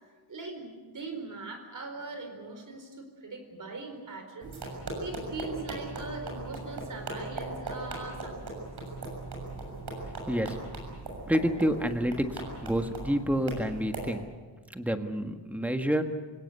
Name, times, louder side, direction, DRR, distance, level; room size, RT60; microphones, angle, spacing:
voice 1, 0.3-4.6 5.0-8.4, right 3 dB, 50° right, 5 dB, 4.5 m, -41 dB
sound 1, 4.4-14.1, right 2 dB, 75° right, 7.0 m, -39 dB
voice 2, 11.3-14.2 14.7-16.0, equal, 5° right, 6 dB, 1.6 m, -28 dB
26.5 x 17.5 x 8.2 m, 1.4 s
wide cardioid pair, 150°, 39 cm